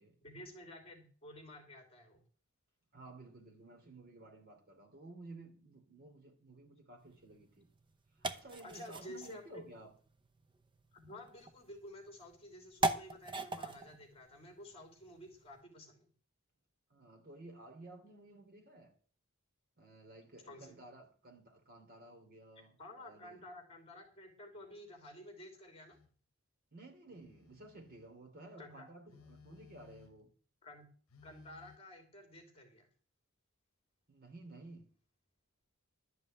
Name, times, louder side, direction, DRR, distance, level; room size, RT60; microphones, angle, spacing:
voice 1, 0.2-2.2 8.6-9.8 10.9-16.1 20.5-20.7 22.8-26.0 28.6-28.9 30.6-30.9 31.2-32.9, left 1 dB, 25° left, 3.1 m, -52 dB
voice 2, 2.9-7.7 8.1-9.9 16.9-19.0 19.8-23.4 26.7-30.3 34.1-34.9, right 2 dB, 45° right, 3.1 m, -54 dB
sound 1, 7.0-15.6, right 2 dB, 20° right, 0.7 m, -42 dB
Telephone, 25.9-26.2 27.1-28.2 29.1-30.3 31.1-31.8, left 5 dB, 70° left, 1.0 m, -60 dB
12.0 x 5.4 x 8.8 m
head